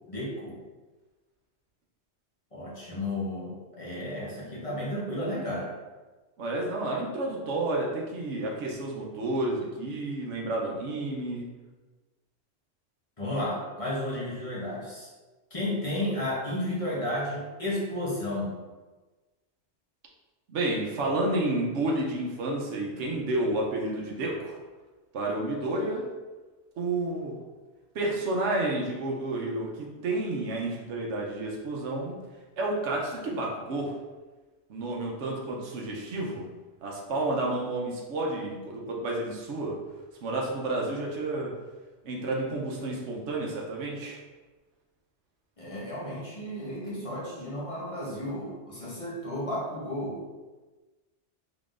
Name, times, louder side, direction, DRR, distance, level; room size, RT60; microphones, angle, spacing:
voice 1, 0.1-0.6 2.5-5.7 13.2-15.1 15.5-18.6 45.6-50.2, left 1 dB, 30° left, -6 dB, 0.9 m, -33 dB
voice 2, 6.4-11.5 20.5-24.6 25.1-26.1 26.8-27.4 27.9-32.2 32.6-33.9 34.7-36.5 36.8-39.8 40.2-41.5 42.0-44.2, right 2 dB, 80° right, -1 dB, 1.0 m, -30 dB
3.7 x 3.7 x 2.5 m, 1.2 s
omnidirectional pair, 1.2 m